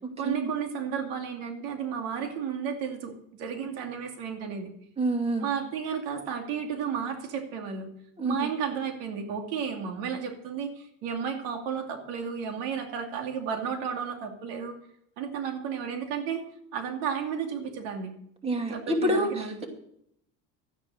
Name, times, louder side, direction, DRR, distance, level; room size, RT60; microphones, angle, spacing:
voice 1, 0.2-4.7 5.4-7.9 8.2-14.8 15.2-16.4 16.7-18.2 18.7-19.7, right 7 dB, 80° right, 4 dB, 2.6 m, -33 dB
voice 2, 5.0-5.5 8.2-8.5 18.4-19.7, right 1 dB, 15° right, 3 dB, 2.6 m, -27 dB
13.0 x 9.6 x 6.4 m, 0.72 s
cardioid pair, 125°, 36 cm